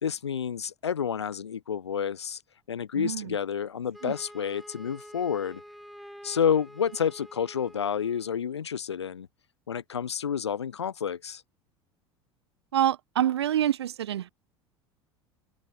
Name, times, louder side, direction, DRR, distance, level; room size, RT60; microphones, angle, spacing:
voice 1, 0.0-2.4 2.7-5.6 6.2-9.3 9.7-11.4, left 7 dB, 75° left, 1.0 m, -29 dB
voice 2, 2.9-3.4 4.0-4.1 12.7-14.3, right 11 dB, 70° right, 2.7 m, -26 dB
Wind instrument woodwind instrument, 3.9-8.3, equal, ahead, 4.2 m, -48 dB
open air
figure-of-eight pair, 70°, 14 cm